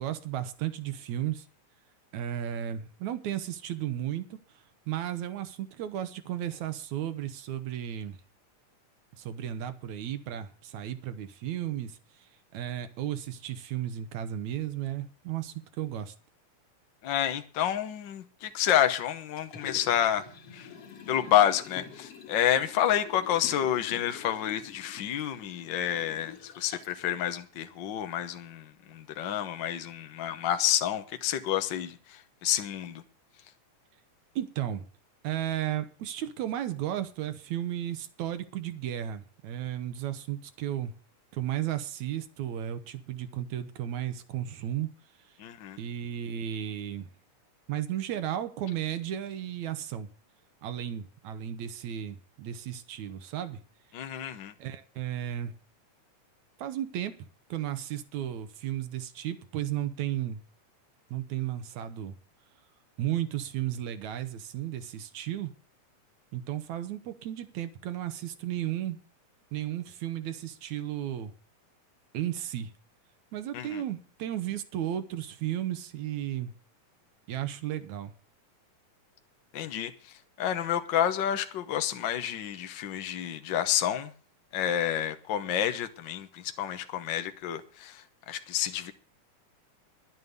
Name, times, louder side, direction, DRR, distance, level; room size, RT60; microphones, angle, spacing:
voice 1, 0.0-1.5 2.1-4.4 4.9-8.2 9.2-16.1 34.4-34.9 35.2-40.9 41.3-44.9 45.8-47.1 47.7-50.1 50.6-53.6 54.6-55.5 56.6-57.2 57.5-60.4 61.1-62.2 63.0-65.5 66.3-69.0 69.5-71.3 72.1-72.7 73.3-76.5 77.3-78.1, right 11 dB, 70° right, 2.3 m, -34 dB
voice 2, 17.0-20.2 20.5-20.7 21.1-33.0 45.4-45.8 53.9-54.5 73.5-73.8 79.5-79.9 80.4-84.1 84.5-88.9, left 10 dB, 75° left, 1.0 m, -29 dB
Liquid, 19.4-27.0 27.5-27.6, left 6 dB, 55° left, 2.4 m, -47 dB
11.0 x 9.3 x 8.1 m
omnidirectional pair, 3.5 m